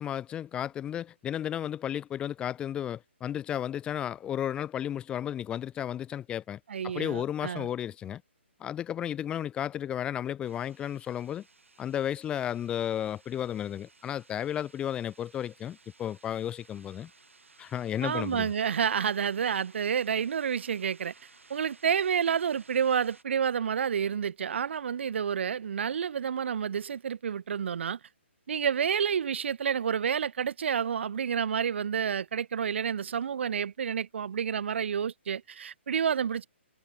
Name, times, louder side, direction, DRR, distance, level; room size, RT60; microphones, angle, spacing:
voice 1, 0.0-8.2 8.6-11.4 11.8-17.1 17.6-18.5, left 10 dB, 15° left, 0.8 m, -33 dB
voice 2, 6.7-7.7 18.0-21.1 21.5-28.0 28.5-36.5, right 7 dB, 65° right, 0.4 m, -29 dB
sound 1, 10.4-23.2, right 3 dB, 90° right, 7.9 m, -59 dB
hypercardioid pair, 140°, 7 cm